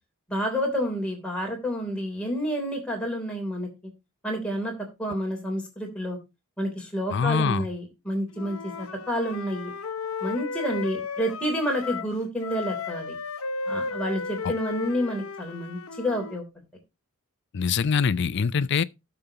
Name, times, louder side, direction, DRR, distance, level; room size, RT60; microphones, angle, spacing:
voice 1, 0.3-3.7 4.2-4.7 5.0-6.2 6.6-9.7 10.2-13.2 13.7-16.4, equal, 5° left, 3.3 m, -29 dB
voice 2, 7.1-7.7 14.4-14.5 17.5-18.8, left 6 dB, 55° left, 0.4 m, -24 dB
Wind instrument woodwind instrument, 8.3-12.1 12.4-16.4, left 4 dB, 80° left, 0.8 m, -34 dB
17.0 x 6.8 x 2.9 m
head